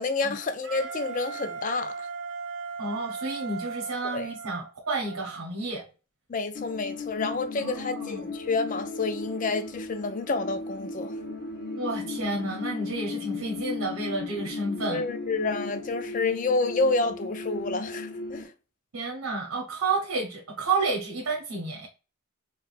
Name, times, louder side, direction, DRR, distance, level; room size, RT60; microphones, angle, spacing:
voice 1, 0.0-2.1 4.1-4.3 6.3-11.1 14.9-18.5, left 3 dB, 35° left, 0.4 m, -29 dB
Wind instrument woodwind instrument, 0.6-5.4, right 4 dB, 55° right, 0.5 m, -37 dB
voice 2, 2.8-5.9 7.6-8.3 11.8-15.0 18.9-21.9, right 3 dB, 85° right, 1.0 m, -31 dB
sound 1, 6.5-18.4, left 3 dB, 55° left, 0.9 m, -36 dB
4.6 x 2.4 x 2.5 m
head